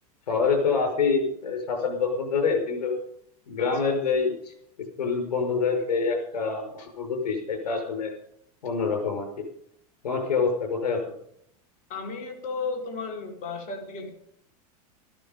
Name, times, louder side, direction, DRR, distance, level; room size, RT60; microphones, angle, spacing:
voice 1, 0.3-3.0 3.5-4.5 5.0-8.1 8.6-9.4 10.0-11.0, left 5 dB, 85° left, 4 dB, 5.7 m, -26 dB
voice 2, 3.6-4.0 11.9-14.1, left 4 dB, 40° left, 3 dB, 4.1 m, -34 dB
14.0 x 12.5 x 5.4 m, 0.71 s
hypercardioid pair, 110°, 20 cm